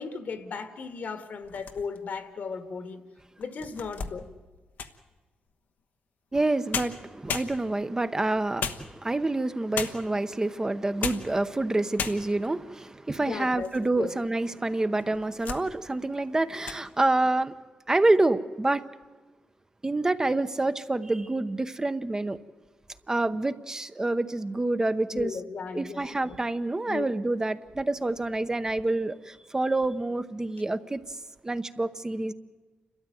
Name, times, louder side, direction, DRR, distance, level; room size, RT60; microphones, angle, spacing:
voice 1, 0.0-3.0 3.4-4.3 13.2-13.7 14.0-14.1 25.1-26.4 26.9-27.1, left 5 dB, 65° left, 9 dB, 1.6 m, -36 dB
sound 1, 1.4-2.2 2.8-2.9 3.4-5.1 6.4-6.5 6.7-7.9 8.6-9.3 9.7-10.2 10.8-11.4 11.6-11.7 12.0-12.5 13.1-13.9 14.2-14.3 15.0-15.7 16.0-16.3 16.6-16.8, left 6 dB, 80° left, 1.1 m, -35 dB
voice 2, 6.3-17.5 17.9-18.8 19.8-22.4 23.1-25.3 25.7-31.0 31.4-32.3, right 2 dB, 20° right, 11 dB, 0.8 m, -27 dB
29.0 x 13.5 x 9.2 m, 1.3 s
cardioid pair, 85°, 3 cm